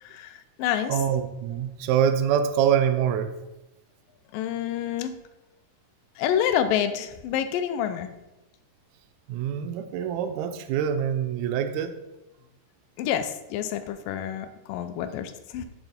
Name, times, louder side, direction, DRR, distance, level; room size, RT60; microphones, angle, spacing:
voice 1, 0.0-1.0 4.3-5.2 6.2-8.1 13.0-15.7, left 9 dB, 80° left, 10 dB, 2.2 m, -28 dB
voice 2, 0.9-3.3 9.3-11.9, right 8 dB, 85° right, 9 dB, 1.6 m, -25 dB
8.7 x 3.5 x 5.6 m, 0.99 s
omnidirectional pair, 3.9 m